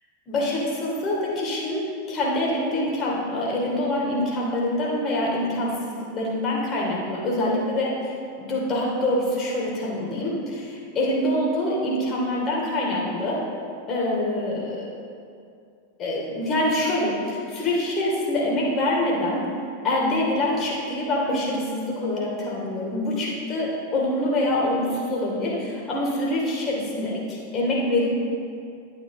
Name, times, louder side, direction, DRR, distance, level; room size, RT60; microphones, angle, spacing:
voice 1, 0.3-13.4 13.9-14.9 16.0-19.4 19.8-28.1, left 1 dB, 30° left, -3 dB, 2.9 m, -25 dB
11.5 x 9.2 x 3.7 m, 2.4 s
figure-of-eight pair, 90°, 0 cm